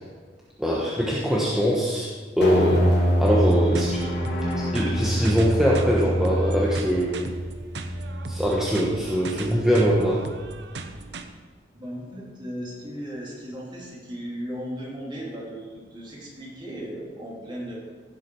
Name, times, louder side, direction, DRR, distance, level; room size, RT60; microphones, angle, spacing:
voice 1, 0.6-2.1 2.4-2.8 3.2-4.1 4.7-7.2 8.3-10.2, equal, 5° right, -6 dB, 1.3 m, -22 dB
sound 1, 2.4-8.9, equal, 85° left, 2.4 m, -25 dB
sound 2, 3.3-11.3, right 3 dB, 75° right, 0.8 m, -38 dB
voice 2, 11.7-17.8, equal, 25° right, -4 dB, 3.1 m, -36 dB
16.0 x 7.6 x 4.7 m, 1.5 s
head